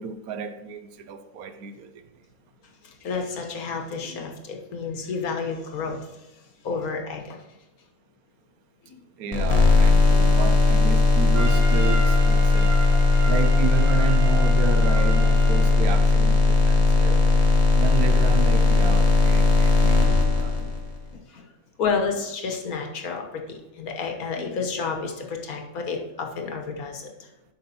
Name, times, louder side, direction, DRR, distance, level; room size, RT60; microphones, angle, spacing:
voice 1, 0.0-2.0 9.2-12.8 13.2-17.3 17.8-20.0 20.4-20.6, right 6 dB, 80° right, 1.2 m, -32 dB
voice 2, 2.8-6.1 6.6-7.4 10.1-10.2 20.4-20.7 21.1-21.4 21.8-27.3, left 5 dB, 75° left, 1.6 m, -31 dB
sound 1, 9.3-21.0, left 3 dB, 30° left, 1.0 m, -18 dB
Trumpet, 11.3-15.8, right 3 dB, 55° right, 2.0 m, -34 dB
8.6 x 6.0 x 4.3 m
omnidirectional pair, 1.5 m